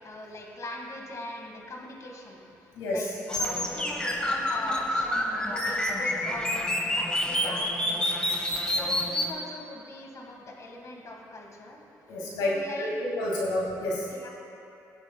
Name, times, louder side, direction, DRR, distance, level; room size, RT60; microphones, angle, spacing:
voice 1, 0.0-5.1 5.4-8.2 8.7-11.8 12.3-12.9 14.1-14.3, left 1 dB, 45° left, 0 dB, 1.6 m, -41 dB
sound 1, 3.3-9.3, left 1 dB, 10° left, 1.3 m, -28 dB
voice 2, 12.1-14.0, left 1 dB, 85° left, -5 dB, 2.0 m, -29 dB
18.0 x 7.8 x 2.2 m, 2.8 s
supercardioid pair, 60°, 7 cm